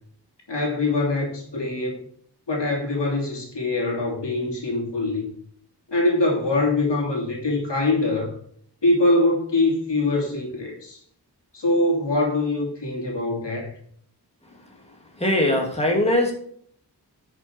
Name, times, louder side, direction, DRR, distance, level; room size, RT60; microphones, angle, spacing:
voice 1, 0.5-2.0 2.5-5.3 5.9-8.4 8.8-11.0 11.5-13.7, left 2 dB, 80° left, -1 dB, 2.9 m, -23 dB
voice 2, 15.2-16.3, left 1 dB, 15° left, 0 dB, 2.7 m, -20 dB
11.5 x 6.0 x 4.6 m, 0.62 s
wide cardioid pair, 65°, 41 cm